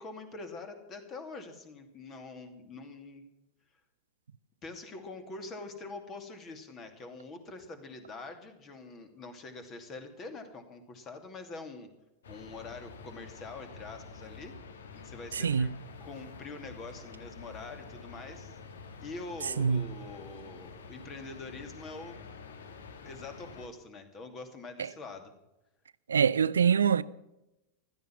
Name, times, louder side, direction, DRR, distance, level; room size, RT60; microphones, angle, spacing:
voice 1, 0.0-3.2 4.6-11.9 12.3-14.5 14.9-15.7 16.0-18.6 19.0-22.2 23.0-25.3, left 3 dB, 30° left, 2.6 m, -44 dB
sound 1, 12.2-23.7, left 4 dB, 65° left, 1.6 m, -48 dB
voice 2, 15.3-15.7 19.6-19.9 24.8-24.9 26.1-27.0, right 7 dB, 70° right, 0.4 m, -24 dB
15.5 x 12.5 x 6.0 m
figure-of-eight pair, 90°, 0 cm